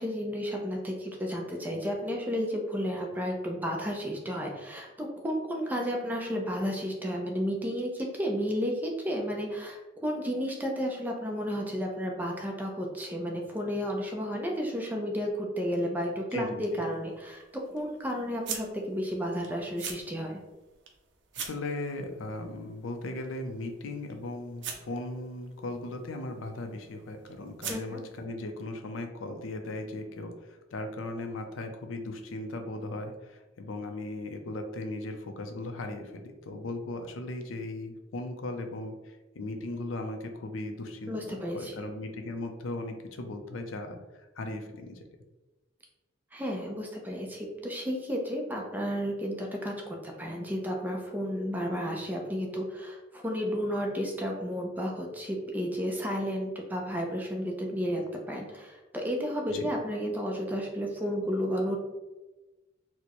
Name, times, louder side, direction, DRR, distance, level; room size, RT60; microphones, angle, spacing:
voice 1, 0.0-17.4 17.7-20.4 27.7-28.0 41.1-41.7 46.3-58.0 58.3-61.8, equal, 10° right, 0 dB, 0.5 m, -32 dB
voice 2, 16.3-16.8 21.4-45.0 59.5-59.7, left 2 dB, 85° left, 5 dB, 0.5 m, -37 dB
sound 1, 16.7-28.2, right 6 dB, 60° right, 0.5 m, -45 dB
4.2 x 2.1 x 2.9 m, 1.1 s
head